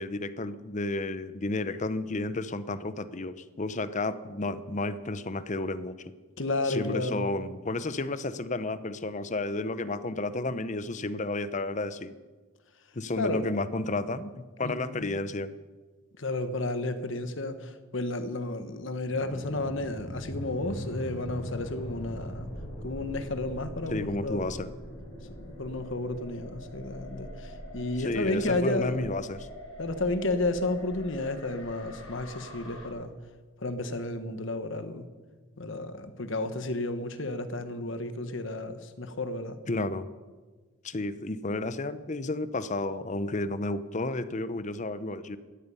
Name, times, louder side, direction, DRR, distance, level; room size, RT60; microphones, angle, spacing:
voice 1, 0.0-6.0 6.6-12.1 12.9-15.5 23.9-24.7 28.0-29.5 39.7-40.1 40.8-45.4, left 2 dB, 35° left, 14 dB, 0.7 m, -32 dB
voice 2, 6.4-7.3 13.2-13.4 14.6-15.2 16.2-22.5 22.8-24.5 25.4-29.1 29.8-33.1 33.6-35.1 35.6-39.6, left 2 dB, 65° left, 10 dB, 1.3 m, -32 dB
sound 1, 19.1-32.9, equal, 85° left, 4.2 m, -42 dB
17.0 x 13.5 x 5.6 m, 1.4 s
head